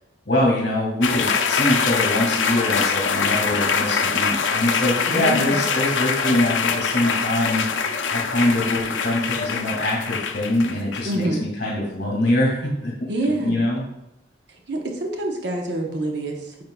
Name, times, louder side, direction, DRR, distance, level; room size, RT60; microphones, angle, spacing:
voice 1, 0.3-7.6 8.1-12.9 13.2-13.8, left 1 dB, 55° left, -4 dB, 1.9 m, -23 dB
sound 1, 1.0-11.3, left 6 dB, 80° left, 0.5 m, -24 dB
voice 2, 5.1-5.6 11.0-11.4 13.1-13.6 14.5-16.6, right 1 dB, 65° right, 1 dB, 0.9 m, -26 dB
8.8 x 5.4 x 2.3 m, 0.88 s
head